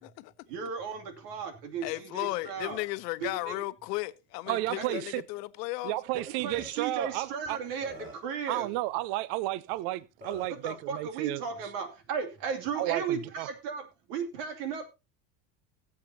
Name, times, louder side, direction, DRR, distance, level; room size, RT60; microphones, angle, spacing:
voice 1, 0.5-2.8 3.2-3.5 4.8-5.0 6.1-8.7 10.6-14.8, right 6 dB, 90° right, 2.6 m, -35 dB
voice 2, 1.8-5.9, left 19 dB, 85° left, 0.9 m, -35 dB
voice 3, 4.5-5.2 5.8-7.6 8.5-11.4 12.8-13.5, right 17 dB, 60° right, 0.6 m, -32 dB
Burping eructation, 6.2-6.3 6.5-6.7 7.5-7.6 7.8-8.3 9.7-9.8 10.2-10.6, left 1 dB, 15° right, 7.4 m, -45 dB
20.0 x 7.6 x 2.7 m
supercardioid pair, 135°, 47 cm